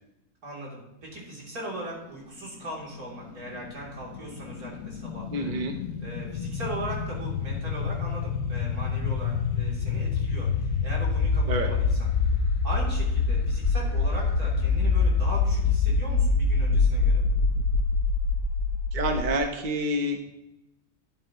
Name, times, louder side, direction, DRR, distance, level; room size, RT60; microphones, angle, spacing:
voice 1, 0.4-5.5 6.0-10.5 10.8-12.0 12.6-17.2, right 1 dB, 75° right, -4 dB, 3.8 m, -39 dB
sound 1, 3.5-19.4, left 4 dB, 85° left, 1.2 m, -26 dB
voice 2, 5.3-5.8 11.4-11.7 18.9-20.3, right 1 dB, 35° right, 4 dB, 1.1 m, -28 dB
12.5 x 11.0 x 3.1 m, 0.91 s
omnidirectional pair, 1.6 m